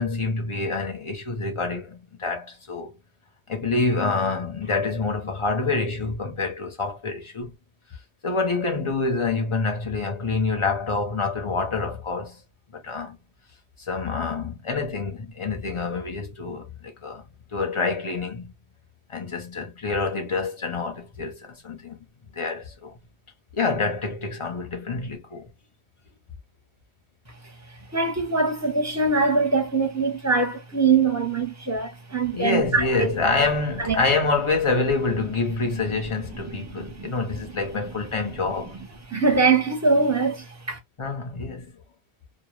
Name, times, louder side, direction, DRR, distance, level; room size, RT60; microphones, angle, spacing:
voice 1, 0.0-2.9 3.5-7.5 8.2-12.4 12.7-13.2 13.8-17.2 17.5-18.5 19.1-22.0 22.3-23.0 23.5-25.5 32.3-38.8 41.0-41.7, left 3 dB, 35° left, 0.6 m, -27 dB
voice 2, 27.9-33.1 33.8-34.0 36.5-37.1 39.1-40.8, right 4 dB, 20° right, 0.6 m, -23 dB
2.3 x 2.0 x 3.0 m
omnidirectional pair, 1.1 m